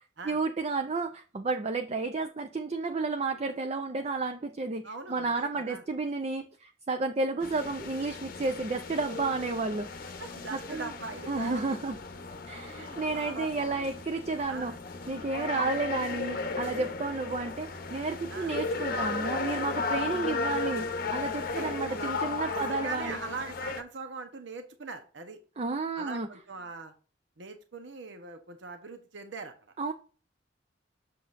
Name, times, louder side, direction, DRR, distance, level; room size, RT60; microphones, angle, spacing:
voice 1, 0.2-9.9 10.5-10.9 11.3-12.0 12.5-14.7 15.1-23.2 25.6-26.3 29.8-29.9, right 3 dB, 35° right, 0.5 m, -32 dB
voice 2, 4.8-5.8 10.2-11.8 12.7-13.9 14.5-14.8 15.5-15.8 18.3-18.5 21.3-22.1 22.5-25.4 25.9-26.9 27.4-29.5, right 3 dB, 70° right, 0.9 m, -41 dB
sound 1, 7.4-23.8, left 4 dB, 50° left, 0.8 m, -35 dB
7.6 x 6.7 x 2.6 m
head